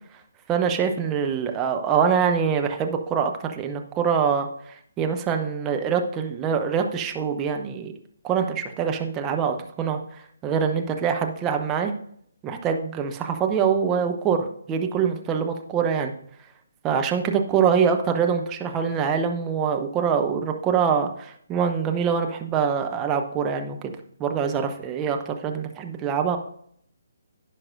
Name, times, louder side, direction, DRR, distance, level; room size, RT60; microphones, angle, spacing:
voice 1, 0.5-7.9 8.2-11.9 12.4-16.1 16.8-23.9 24.2-26.4, right 7 dB, 15° right, 4 dB, 0.8 m, -24 dB
15.5 x 5.9 x 2.6 m, 0.66 s
figure-of-eight pair, 140°, 0 cm